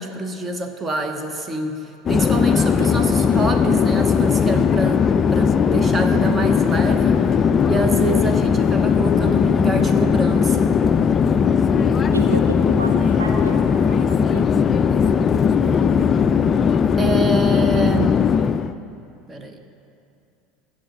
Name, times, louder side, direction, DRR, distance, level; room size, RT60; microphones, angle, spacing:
voice 1, 0.0-5.1 5.3-7.2 7.7-10.8 17.0-18.2 19.3-19.6, right 2 dB, 20° right, 6 dB, 1.0 m, -26 dB
Conversation / Chatter / Fixed-wing aircraft airplane, 2.1-18.7, left 6 dB, 30° left, 0.3 m, -18 dB
voice 2, 11.7-13.6 13.9-14.5, right 2 dB, 85° right, 3 dB, 1.0 m, -30 dB
15.5 x 6.4 x 5.3 m, 2.6 s
figure-of-eight pair, 70°, 0 cm